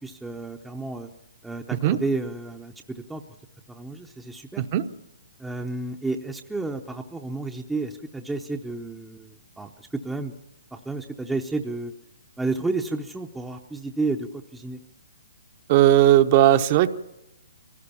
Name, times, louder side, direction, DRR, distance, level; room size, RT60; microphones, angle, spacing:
voice 1, 0.0-1.1 1.4-3.2 3.7-4.6 5.4-10.3 10.7-11.9 12.4-14.8, right 3 dB, 5° right, 3 dB, 0.7 m, -31 dB
voice 2, 4.6-4.9 15.7-16.9, right 12 dB, 35° right, 10 dB, 0.9 m, -17 dB
23.0 x 17.5 x 7.1 m, 0.87 s
hypercardioid pair, 150°, 0 cm